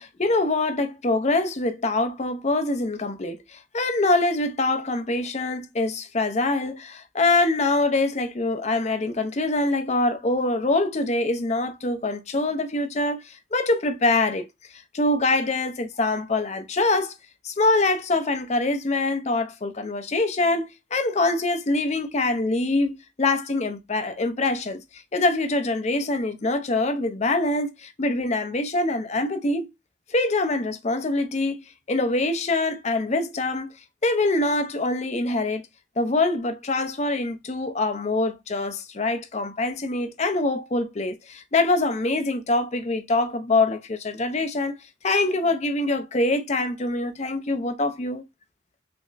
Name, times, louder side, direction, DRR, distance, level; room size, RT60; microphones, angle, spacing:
voice 1, 0.0-14.5 14.7-17.2 17.4-29.7 30.1-31.6 31.9-33.7 34.0-35.6 36.0-44.7 45.0-48.2, left 2 dB, 35° left, 0.5 m, -24 dB
3.4 x 2.0 x 3.9 m
head